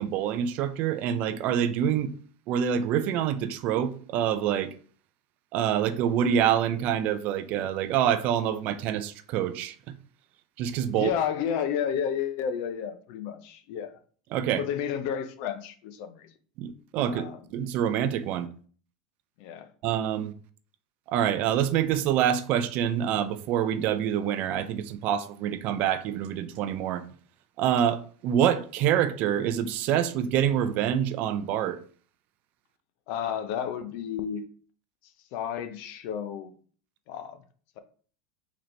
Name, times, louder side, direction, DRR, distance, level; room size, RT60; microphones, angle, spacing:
voice 1, 0.0-2.1 2.5-4.7 5.5-9.8 10.6-11.1 14.3-14.6 16.6-18.5 19.8-20.3 21.1-27.0 27.6-31.8, right 9 dB, 55° right, 0.4 m, -26 dB
voice 2, 10.9-14.0 14.6-16.3 17.1-17.4 19.4-19.7 33.1-34.4 35.3-36.5 37.1-37.4, left 8 dB, 60° left, 0.6 m, -31 dB
3.9 x 3.0 x 3.2 m
hypercardioid pair, 95°, 3 cm